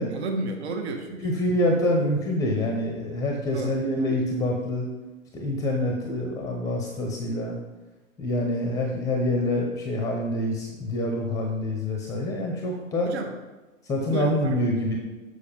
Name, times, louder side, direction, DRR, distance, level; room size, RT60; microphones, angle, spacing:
voice 1, 0.1-1.3 3.5-3.8 13.0-13.3 14.1-14.6, right 3 dB, 55° right, 4 dB, 1.2 m, -31 dB
voice 2, 1.2-4.9 5.3-7.6 8.2-13.1 13.8-15.0, left 1 dB, 10° left, 1 dB, 0.7 m, -26 dB
7.0 x 6.5 x 5.4 m, 1.2 s
figure-of-eight pair, 120°, 41 cm